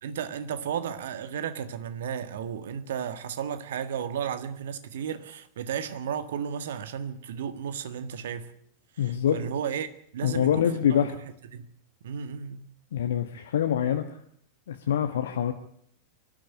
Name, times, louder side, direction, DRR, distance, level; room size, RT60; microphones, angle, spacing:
voice 1, 0.0-8.5 8.9-9.9 10.1-11.2 11.5-11.7 12.0-12.7, right 8 dB, 60° right, 1.6 m, -34 dB
voice 2, 9.0-9.4 10.2-11.1 12.9-14.2 14.7-15.5, left 9 dB, 60° left, 1.3 m, -25 dB
24.5 x 12.0 x 9.7 m
figure-of-eight pair, 90°, 0 cm